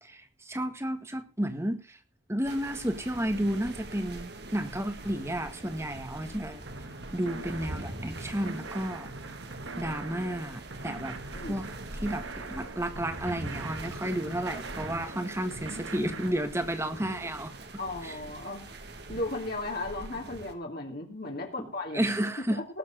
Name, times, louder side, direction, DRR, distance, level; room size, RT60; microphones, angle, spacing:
voice 1, 0.0-2.0 2.3-6.7 7.1-9.1 9.8-11.2 11.5-11.7 11.9-17.5 18.0-18.2 21.6-21.7 21.9-22.6, right 1 dB, 15° right, 8 dB, 1.6 m, -32 dB
sound 1, 2.4-20.5, right 2 dB, 55° right, 2.1 m, -43 dB
sound 2, 6.7-16.3, right 3 dB, 85° right, 2.0 m, -42 dB
voice 2, 17.8-18.7 19.1-22.1 22.5-22.7, left 2 dB, 50° left, 0 dB, 2.7 m, -35 dB
19.5 x 7.5 x 5.0 m, 0.31 s
head